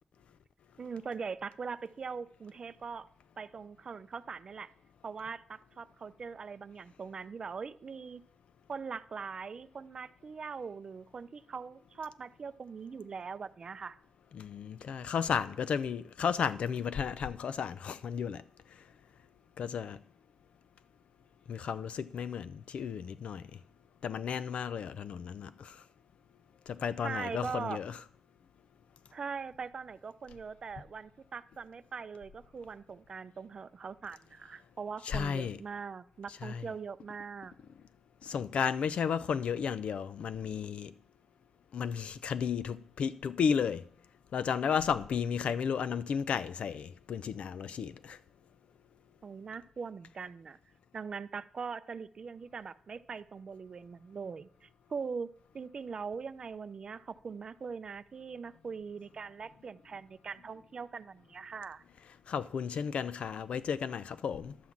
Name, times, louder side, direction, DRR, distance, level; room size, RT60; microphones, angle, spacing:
voice 1, 0.8-3.1 3.4-4.7 5.0-8.2 8.7-14.0 27.0-27.8 29.1-37.5 49.2-50.6 50.9-55.3 55.5-61.8, right 5 dB, 40° right, 0.5 m, -41 dB
voice 2, 14.3-18.4 19.6-20.0 21.5-23.5 24.0-25.8 26.7-28.0 35.0-35.6 36.4-36.6 38.2-40.9 41.7-43.8 44.3-48.2 62.3-64.6, left 7 dB, 70° left, 0.4 m, -33 dB
11.5 x 5.9 x 7.3 m
wide cardioid pair, 175°, 2 cm